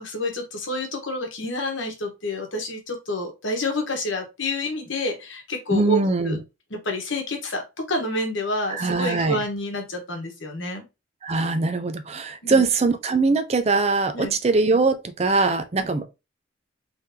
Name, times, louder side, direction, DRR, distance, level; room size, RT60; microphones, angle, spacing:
voice 1, 0.0-6.0 6.2-6.4 6.7-10.8 12.4-12.6 14.1-14.3, left 1 dB, 70° left, 1.2 m, -28 dB
voice 2, 5.7-6.4 8.7-9.4 11.2-16.0, right 3 dB, 30° right, 0.5 m, -22 dB
3.9 x 3.3 x 2.7 m
head